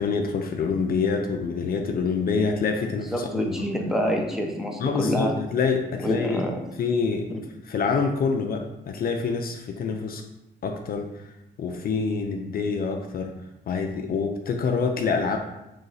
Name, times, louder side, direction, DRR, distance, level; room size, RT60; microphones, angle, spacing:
voice 1, 0.0-3.7 4.8-6.4 6.8-10.2 10.6-11.1 11.6-13.3 13.7-15.4, left 5 dB, 50° left, 4 dB, 0.4 m, -26 dB
voice 2, 3.1-5.3 6.0-6.5 7.3-7.4, equal, ahead, 0 dB, 0.6 m, -26 dB
3.1 x 2.7 x 3.8 m, 0.92 s
cardioid pair, 90°, 20 cm